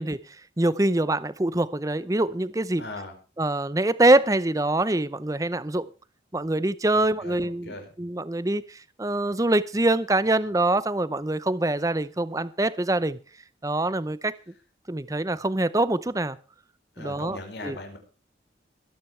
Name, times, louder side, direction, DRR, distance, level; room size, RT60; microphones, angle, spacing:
voice 1, 0.0-2.8 3.4-5.9 6.3-13.2 13.6-14.4 14.9-16.4 17.0-17.8, right 2 dB, 20° right, 0.6 m, -24 dB
voice 2, 2.8-3.1 7.0-7.9 16.9-18.0, left 2 dB, 75° left, 5.1 m, -39 dB
22.0 x 10.5 x 3.2 m
head